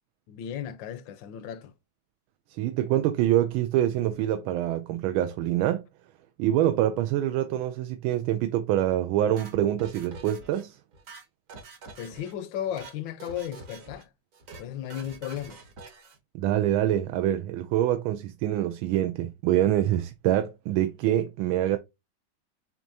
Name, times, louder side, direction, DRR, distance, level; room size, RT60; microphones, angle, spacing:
voice 1, 0.3-1.7 12.0-14.1 14.6-15.6, left 10 dB, 75° left, 1.2 m, -35 dB
voice 2, 2.5-5.9 6.4-10.8 16.3-21.8, right 12 dB, 90° right, 1.4 m, -25 dB
sound 1, 9.4-10.6 10.9-12.3 12.6-12.9 13.2-14.0 14.3-14.6 14.9-16.2, right 3 dB, 50° right, 1.2 m, -46 dB
6.8 x 2.8 x 2.7 m
omnidirectional pair, 2.2 m